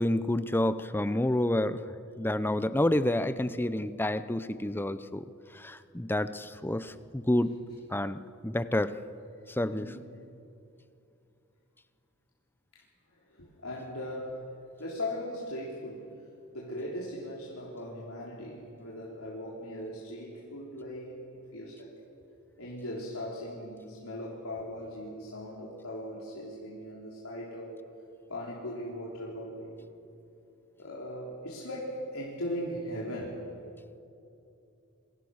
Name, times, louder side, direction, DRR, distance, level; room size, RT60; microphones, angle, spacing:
voice 1, 0.0-1.8 2.2-5.2 5.5-7.6 7.9-8.9 9.5-9.9, left 1 dB, 10° left, 13 dB, 0.7 m, -29 dB
voice 2, 9.7-10.1 12.7-12.8 13.1-16.1 16.5-21.3 21.5-21.9 22.6-27.8 28.3-29.9 30.8-33.4, left 1 dB, 80° left, -4 dB, 3.7 m, -39 dB
27.0 x 23.0 x 6.5 m, 2.7 s
head